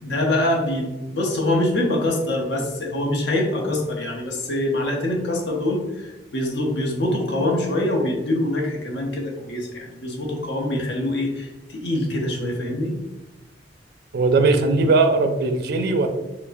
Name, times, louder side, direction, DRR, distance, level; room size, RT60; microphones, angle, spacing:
voice 1, 0.0-12.9, left 1 dB, 70° left, 0 dB, 0.7 m, -24 dB
voice 2, 14.1-16.1, right 3 dB, 60° right, 6 dB, 0.4 m, -19 dB
4.4 x 2.0 x 2.6 m, 1.0 s
head